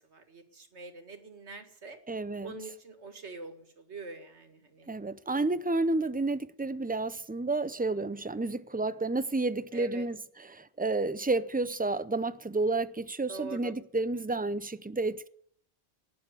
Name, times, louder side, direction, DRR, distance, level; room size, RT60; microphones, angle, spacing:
voice 1, 0.1-2.0 2.4-4.9 9.7-10.1 13.3-13.7, right 3 dB, 85° right, 2.2 m, -44 dB
voice 2, 2.1-2.6 4.9-15.3, right 2 dB, 15° right, 0.4 m, -31 dB
19.0 x 7.1 x 9.6 m
omnidirectional pair, 1.1 m